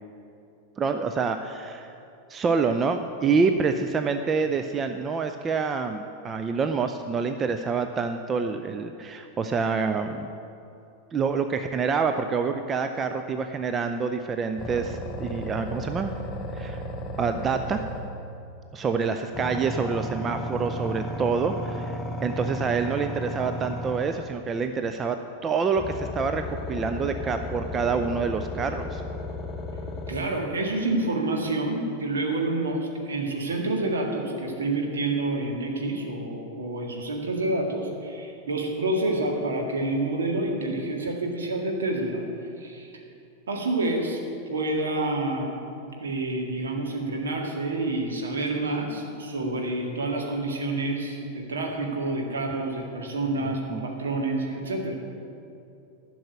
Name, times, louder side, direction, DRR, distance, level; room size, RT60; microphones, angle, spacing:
voice 1, 0.8-1.9 2.3-10.3 11.1-16.1 16.5-16.8 17.2-17.8 18.7-25.2 25.4-29.0 53.4-53.8, right 5 dB, 20° right, 7 dB, 0.5 m, -27 dB
sound 1, 14.6-18.3 19.3-24.3 25.8-30.2, left 1 dB, 20° left, 1.0 m, -34 dB
voice 2, 30.1-42.9 43.5-44.2 44.5-45.5 46.0-55.0, right 2 dB, 65° right, 1 dB, 1.9 m, -28 dB
11.5 x 6.2 x 9.2 m, 2.6 s
figure-of-eight pair, 90°, 0 cm